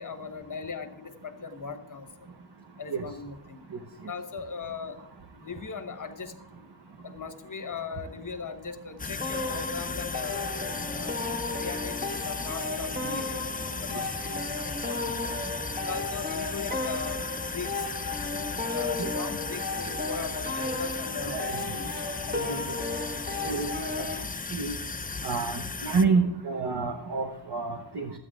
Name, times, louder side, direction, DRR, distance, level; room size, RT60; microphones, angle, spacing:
voice 1, 0.0-2.3 2.8-3.7 4.1-5.0 5.4-6.3 7.0-10.5 10.9-11.2 11.5-13.4 13.8-15.4 15.8-17.2 17.5-17.8 18.7-22.8, left 5 dB, 40° left, 8 dB, 1.3 m, -39 dB
sound 1, 9.0-26.1, left 4 dB, 20° left, 0.5 m, -36 dB
sound 2, 9.2-24.2, left 3 dB, 20° right, 1.8 m, -34 dB
voice 2, 21.2-21.6 22.5-22.6 23.5-23.9 24.5-24.7 25.2-28.1, right 4 dB, 60° right, 3 dB, 1.1 m, -28 dB
12.5 x 9.4 x 3.7 m, 0.95 s
wide cardioid pair, 60°, 46 cm